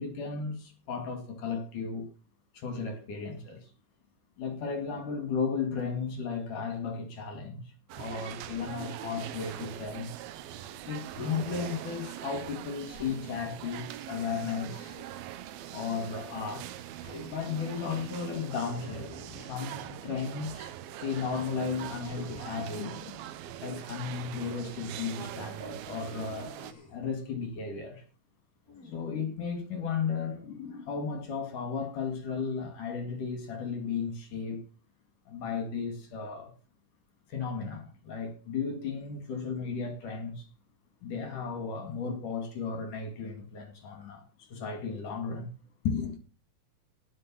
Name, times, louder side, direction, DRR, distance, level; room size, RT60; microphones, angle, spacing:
voice 1, 0.0-2.1 2.5-3.7 4.4-10.1 10.9-15.0 15.7-16.7 17.2-20.7 21.0-23.2 23.6-26.6 26.9-28.0 28.8-34.6 35.3-36.5 37.3-40.5 41.0-45.5 45.9-46.2, left 5 dB, 60° left, 3.7 m, -35 dB
sound 1, 7.9-26.7, right 11 dB, 90° right, 2.8 m, -42 dB
Human voice, 11.1-11.7 12.9-13.3 14.6-15.3 17.0-17.7 18.8-20.0 22.0-22.3 24.3-24.6 26.6-27.1 28.7-29.2, left 3 dB, 25° left, 3.4 m, -48 dB
18.0 x 6.1 x 7.5 m
omnidirectional pair, 4.2 m